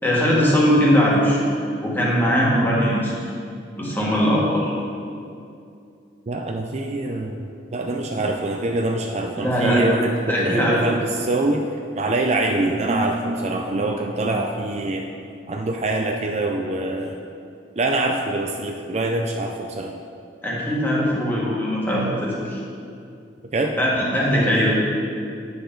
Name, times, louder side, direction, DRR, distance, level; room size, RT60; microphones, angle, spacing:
voice 1, 0.0-1.4 1.8-3.1 3.8-4.7 9.4-9.8 10.3-10.8 20.4-22.6 23.8-24.7, equal, 10° left, -6 dB, 1.7 m, -20 dB
voice 2, 6.3-11.7 12.0-15.0 15.5-17.2 17.8-19.9 23.5-23.8, right 2 dB, 40° right, 2 dB, 0.4 m, -24 dB
8.9 x 6.8 x 3.9 m, 2.5 s
head